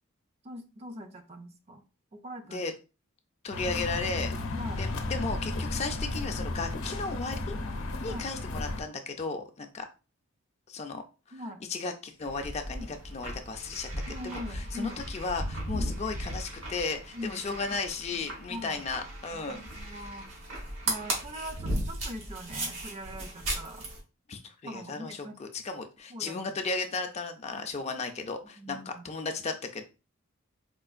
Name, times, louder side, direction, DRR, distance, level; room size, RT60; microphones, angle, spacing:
voice 1, 0.4-1.8 2.1-2.6 4.5-4.8 8.1-8.3 11.3-11.6 12.8-12.9 14.1-15.0 15.7-16.0 17.1-17.4 18.1-18.8 19.3-20.3 20.9-23.9 24.6-25.4 26.1-26.4 27.5-27.6 28.6-29.0, equal, 30° right, 7 dB, 0.5 m, -42 dB
voice 2, 3.4-4.3 4.8-7.6 8.0-9.9 10.7-11.0 11.7-19.6 24.3-29.8, left 4 dB, 30° left, 6 dB, 0.4 m, -35 dB
sound 1, 3.5-8.8, left 2 dB, 90° left, 0.6 m, -34 dB
sound 2, 12.2-24.0, right 1 dB, 70° right, 1.3 m, -36 dB
4.4 x 2.4 x 2.4 m, 0.31 s
head